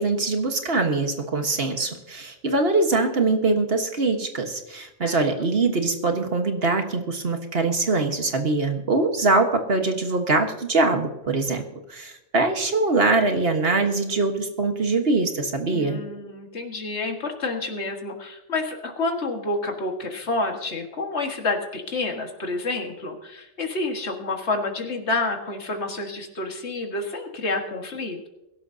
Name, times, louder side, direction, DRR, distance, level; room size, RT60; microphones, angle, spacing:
voice 1, 0.0-11.6 11.9-16.0, right 3 dB, 55° right, 5 dB, 1.6 m, -23 dB
voice 2, 15.7-28.3, left 2 dB, 65° left, 3 dB, 2.0 m, -29 dB
23.0 x 12.0 x 2.8 m, 0.97 s
omnidirectional pair, 1.3 m